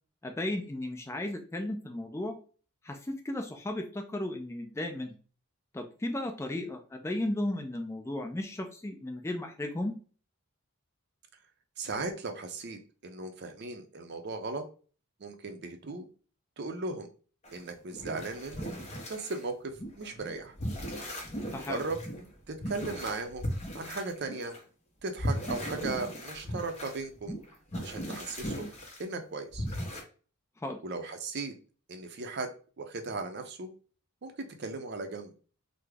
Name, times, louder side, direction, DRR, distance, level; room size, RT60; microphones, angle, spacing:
voice 1, 0.2-2.4 2.8-5.1 5.7-10.0 21.5-21.9 30.6-30.8, left 1 dB, 10° left, 4 dB, 0.3 m, -35 dB
voice 2, 11.8-14.6 15.2-16.1 16.6-17.1 17.5-18.8 19.1-19.6 20.0-20.5 21.7-22.0 22.5-23.4 23.7-24.5 25.0-27.3 27.8-28.7 29.0-29.6 30.8-31.5 31.9-32.5 32.8-33.7 34.2-35.3, right 3 dB, 50° right, 6 dB, 0.5 m, -37 dB
sound 1, 17.4-19.4 19.7-24.6 25.2-29.0 29.5-30.0, equal, 30° left, 0.7 m, -37 dB
3.5 x 2.0 x 3.2 m, 0.39 s
head